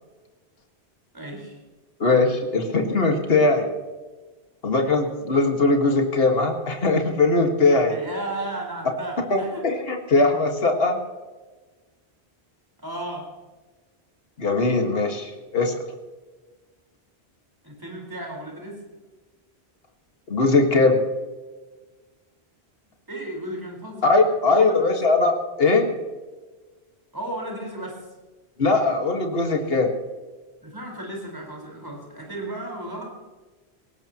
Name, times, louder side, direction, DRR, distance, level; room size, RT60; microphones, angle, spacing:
voice 1, 1.1-1.6 7.9-9.7 12.8-13.3 17.6-18.8 23.1-24.1 24.5-24.9 27.1-28.0 30.6-33.1, right 1 dB, 20° right, -1 dB, 4.7 m, -34 dB
voice 2, 2.0-3.7 4.6-8.0 9.3-11.0 14.4-15.7 20.3-21.0 24.0-25.9 28.6-29.9, left 3 dB, 65° left, 2 dB, 2.0 m, -20 dB
19.5 x 17.5 x 3.0 m, 1.3 s
omnidirectional pair, 1.1 m